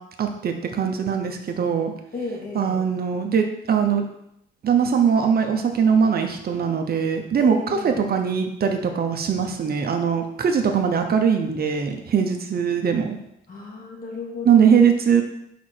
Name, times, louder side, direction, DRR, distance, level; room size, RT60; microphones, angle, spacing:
voice 1, 0.2-1.9 2.5-4.1 4.6-13.2 14.4-15.2, right 6 dB, 50° right, 4 dB, 0.8 m, -21 dB
voice 2, 2.1-2.8 7.4-8.1 13.5-14.8, left 3 dB, 45° left, -2 dB, 2.2 m, -33 dB
5.1 x 4.6 x 4.4 m, 0.78 s
cardioid pair, 90°, 20 cm